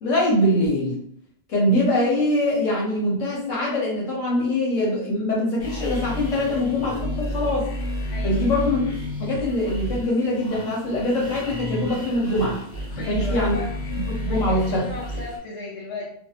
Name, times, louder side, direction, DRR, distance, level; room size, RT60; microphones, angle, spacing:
voice 1, 0.0-1.0 1.5-7.7 8.2-8.8 9.2-12.5 13.0-13.6 14.2-14.8, left 1 dB, 85° left, -4 dB, 1.4 m, -23 dB
sound 1, 5.6-15.4, left 1 dB, 50° left, 0.9 m, -31 dB
voice 2, 8.1-8.5 13.0-13.6 14.3-16.1, left 3 dB, 65° left, -5 dB, 1.1 m, -35 dB
2.6 x 2.6 x 2.8 m, 0.66 s
omnidirectional pair, 1.3 m